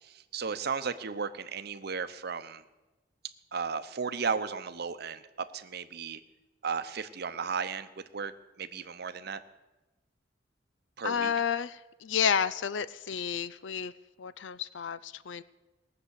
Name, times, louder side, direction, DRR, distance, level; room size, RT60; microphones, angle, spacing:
voice 1, 0.0-2.6 3.5-6.2 6.6-8.3 8.6-9.4 11.0-11.3, right 5 dB, 60° right, 11 dB, 0.8 m, -35 dB
voice 2, 11.0-13.9 14.2-15.4, left 7 dB, 80° left, 17 dB, 0.5 m, -31 dB
19.0 x 6.8 x 8.2 m, 1.1 s
head